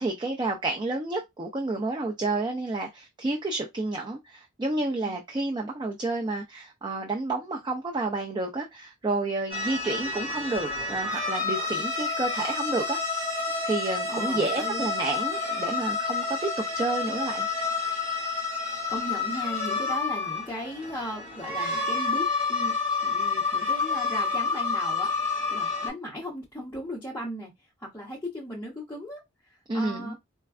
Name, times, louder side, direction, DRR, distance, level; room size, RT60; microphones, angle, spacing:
voice 1, 0.0-13.2 13.6-16.5 16.7-17.5 29.7-30.1, right 2 dB, 20° right, 0.4 m, -30 dB
sound 1, 9.5-25.9, left 4 dB, 65° right, 2.3 m, -29 dB
voice 2, 14.1-14.9 18.9-22.7 23.0-25.1 25.5-27.5 27.8-29.2 29.5-30.2, equal, 10° left, 0.9 m, -37 dB
4.3 x 2.2 x 2.4 m
head